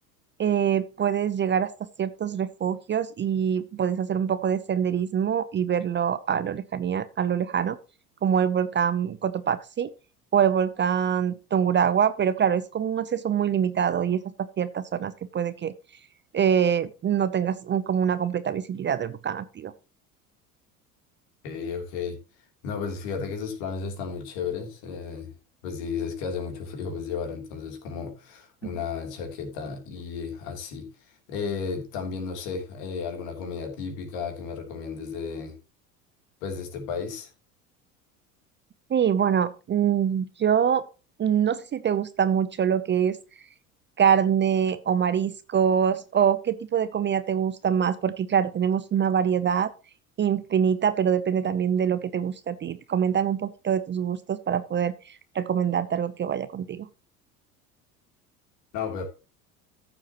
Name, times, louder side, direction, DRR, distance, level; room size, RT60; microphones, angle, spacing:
voice 1, 0.4-1.7 2.0-7.8 8.2-9.9 10.3-14.2 14.6-15.7 16.3-19.7 28.6-28.7 38.9-40.8 41.2-43.2 44.0-49.7 50.2-56.9, right 8 dB, 25° right, 0.7 m, -24 dB
voice 2, 21.4-22.2 22.6-25.3 25.6-30.9 31.3-35.5 36.4-37.3 58.7-59.1, left 5 dB, 60° left, 3.3 m, -33 dB
14.0 x 7.3 x 3.0 m
hypercardioid pair, 75°, 45 cm